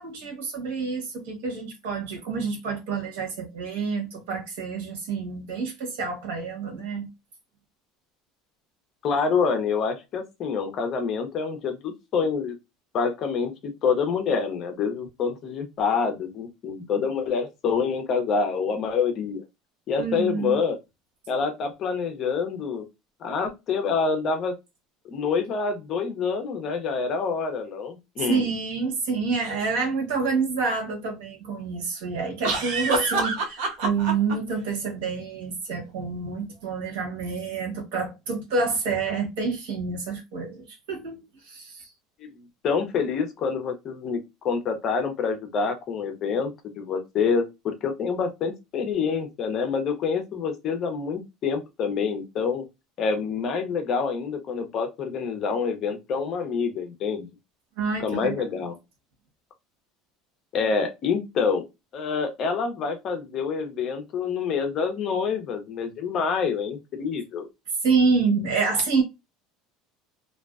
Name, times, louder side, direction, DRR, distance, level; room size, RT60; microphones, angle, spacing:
voice 1, 0.0-7.1 20.0-20.6 28.2-41.9 57.8-58.5 67.8-69.0, right 4 dB, 90° right, 1.0 m, -28 dB
voice 2, 9.0-12.5 12.9-19.4 19.9-20.8 21.3-22.9 23.2-24.5 25.1-28.5 42.2-52.6 53.0-57.3 58.0-58.7 60.5-61.6 61.9-67.5, left 5 dB, 35° left, 0.5 m, -27 dB
sound 1, 29.4-29.6 32.4-34.3, right 3 dB, 65° right, 0.8 m, -27 dB
2.5 x 2.1 x 2.3 m
cardioid pair, 155°, 0 cm